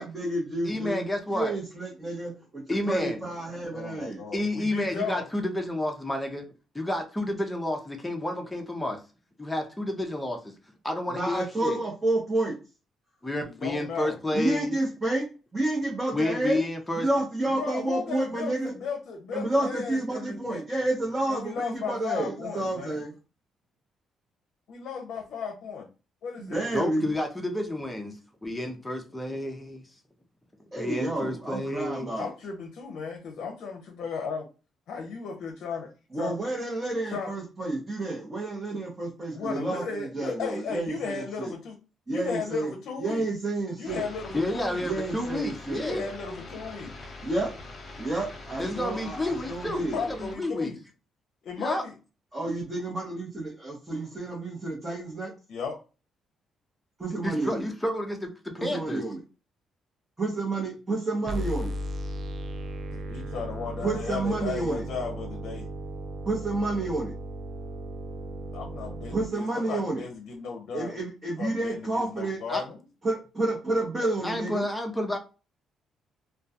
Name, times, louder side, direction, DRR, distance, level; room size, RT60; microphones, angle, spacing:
voice 1, 0.0-4.2 11.1-12.5 14.3-15.2 15.5-16.6 17.0-18.7 19.3-23.1 26.4-27.0 30.7-32.2 36.1-41.5 42.1-42.7 43.0-44.0 44.8-45.8 47.2-47.5 48.0-50.0 52.3-55.3 57.0-57.6 58.6-59.2 60.2-61.7 63.8-64.8 66.3-67.1 69.1-70.0 70.7-72.4 73.0-74.6, right 2 dB, 25° right, -3 dB, 0.8 m, -30 dB
voice 2, 0.6-1.5 2.7-3.2 4.3-6.4 6.7-9.0 9.4-10.5 10.8-11.8 13.2-14.8 16.1-17.1 26.7-29.9 30.7-32.1 44.3-46.1 48.6-50.7 51.6-51.8 57.2-59.0 72.5-72.6 74.2-75.2, left 1 dB, 10° left, 2 dB, 0.5 m, -30 dB
voice 3, 3.7-5.3 13.5-14.2 17.5-20.6 21.3-23.0 24.7-25.9 26.2-26.7 32.2-34.5 34.9-35.9 36.2-36.4 37.1-37.3 39.3-41.8 42.1-43.3 43.8-44.9 45.8-46.9 49.7-50.8 51.4-51.9 55.5-55.8 62.9-65.7 68.5-71.0 71.4-72.8, left 5 dB, 75° left, 2 dB, 0.5 m, -35 dB
sound 1, 43.9-50.4, left 2 dB, 40° left, 0.9 m, -43 dB
sound 2, 61.3-69.3, right 1 dB, 50° right, 0.3 m, -36 dB
2.2 x 2.2 x 2.7 m, 0.32 s
cardioid pair, 90°, 0 cm